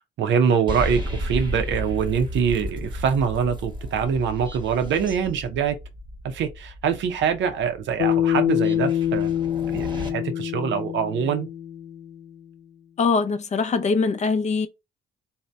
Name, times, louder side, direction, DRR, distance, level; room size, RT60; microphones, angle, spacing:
voice 1, 0.0-5.8 6.2-9.3 9.7-11.5, right 7 dB, 70° right, 0.5 m, -24 dB
sound 1, 0.7-10.1, equal, 25° right, 0.8 m, -34 dB
Bass guitar, 8.0-12.4, left 10 dB, 85° left, 0.6 m, -25 dB
voice 2, 13.0-14.7, left 4 dB, 35° left, 0.5 m, -22 dB
2.6 x 2.0 x 3.2 m
cardioid pair, 90°, 20 cm